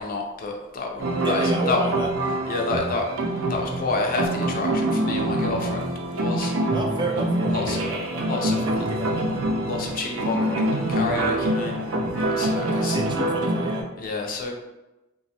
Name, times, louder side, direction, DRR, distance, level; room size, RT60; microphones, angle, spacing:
voice 1, 0.0-1.8 2.5-3.1 3.5-6.5 7.5-7.8 8.3-8.8 9.6-11.7 12.4-13.0 14.0-14.5, left 3 dB, 45° left, 1 dB, 0.5 m, -29 dB
sound 1, 1.0-13.8, right 1 dB, 90° right, 0.5 m, -25 dB
voice 2, 1.2-2.1 6.6-9.3 12.7-13.9, right 2 dB, 25° right, 1 dB, 0.3 m, -31 dB
3.0 x 2.3 x 2.8 m, 1.0 s
head